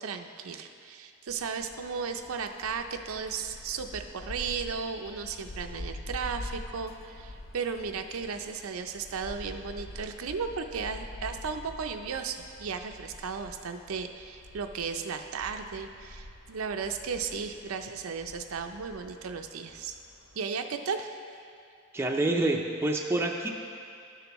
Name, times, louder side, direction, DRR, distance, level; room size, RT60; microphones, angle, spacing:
voice 1, 0.0-19.9 20.4-21.1, right 5 dB, 85° right, 6 dB, 0.5 m, -35 dB
sound 1, 1.3-20.4, left 1 dB, 70° left, 0.6 m, -46 dB
voice 2, 21.9-23.5, right 2 dB, 10° right, 1 dB, 0.4 m, -27 dB
12.5 x 6.8 x 3.0 m, 2.4 s
head